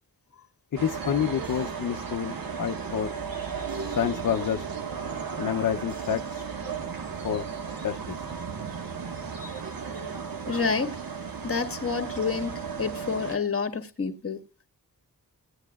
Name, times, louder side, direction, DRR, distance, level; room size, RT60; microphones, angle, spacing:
voice 1, 0.7-3.1 3.9-4.6 5.4-6.4 7.2-7.4 7.8-8.2, left 8 dB, 65° left, 0.7 m, -28 dB
sound 1, 0.8-13.4, right 6 dB, 80° right, 1.5 m, -35 dB
sound 2, 1.4-6.5, right 1 dB, 55° right, 7.2 m, -56 dB
voice 2, 10.5-10.9 11.4-14.4, left 5 dB, 40° left, 1.7 m, -29 dB
17.0 x 9.7 x 2.3 m
wide cardioid pair, 80°, 35 cm